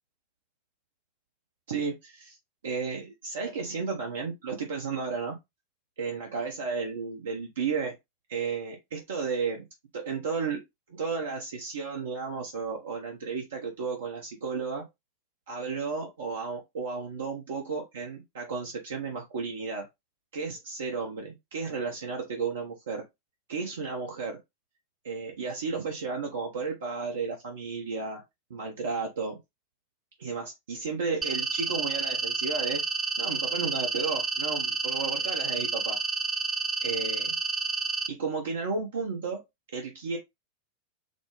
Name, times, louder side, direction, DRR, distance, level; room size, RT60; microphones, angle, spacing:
voice 1, 1.7-2.4 2.6-5.4 6.0-7.9 8.3-9.7 9.9-10.6 10.9-14.9 15.5-19.9 20.3-23.1 23.5-24.4 25.0-28.2 28.5-29.4 30.2-32.8 33.2-36.0 36.8-37.4 38.1-39.4 39.7-40.2, right 5 dB, 65° right, 0.7 m, -33 dB
sound 1, 31.2-38.1, right 4 dB, 20° right, 0.3 m, -30 dB
4.1 x 2.0 x 3.1 m
figure-of-eight pair, 90°, 0 cm